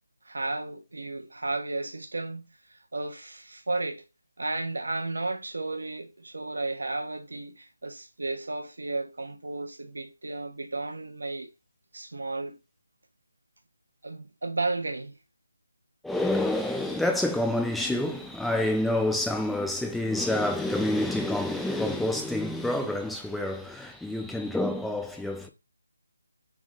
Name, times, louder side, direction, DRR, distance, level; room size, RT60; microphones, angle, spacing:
voice 1, 0.2-4.0 4.4-11.5 11.9-12.6 14.0-15.1, right 2 dB, 85° right, 0.9 m, -33 dB
voice 2, 16.0-25.5, left 1 dB, ahead, 0.4 m, -28 dB
3.6 x 2.6 x 3.6 m
figure-of-eight pair, 170°, 0 cm